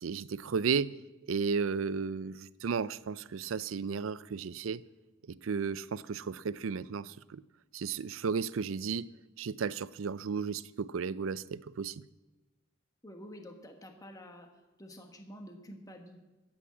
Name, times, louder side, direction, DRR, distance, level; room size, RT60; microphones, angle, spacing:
voice 1, 0.0-0.9 1.3-4.8 5.4-7.4 7.7-9.1 9.4-12.0, right 5 dB, 75° right, 0.4 m, -34 dB
voice 2, 13.0-14.5 14.8-16.2, equal, 20° left, 1.3 m, -49 dB
13.0 x 8.9 x 7.2 m
head